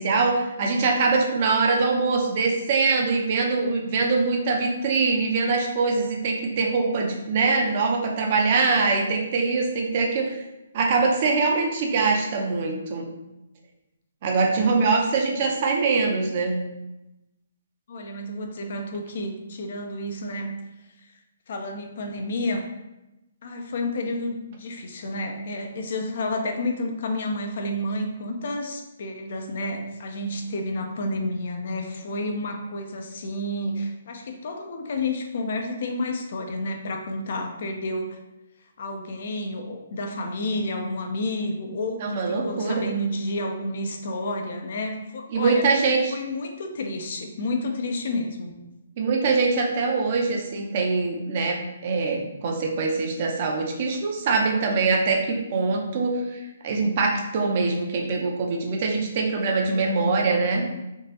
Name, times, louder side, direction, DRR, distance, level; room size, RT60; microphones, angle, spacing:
voice 1, 0.0-10.4 10.7-13.1 14.2-16.6 42.0-42.9 45.3-46.1 49.0-60.7, right 4 dB, 45° right, 1 dB, 0.6 m, -23 dB
voice 2, 17.9-20.5 21.5-22.7 23.4-38.2 38.8-45.6 46.1-48.5, left 1 dB, 55° left, 3 dB, 0.6 m, -30 dB
3.7 x 2.5 x 2.7 m, 0.96 s
hypercardioid pair, 150°, 0 cm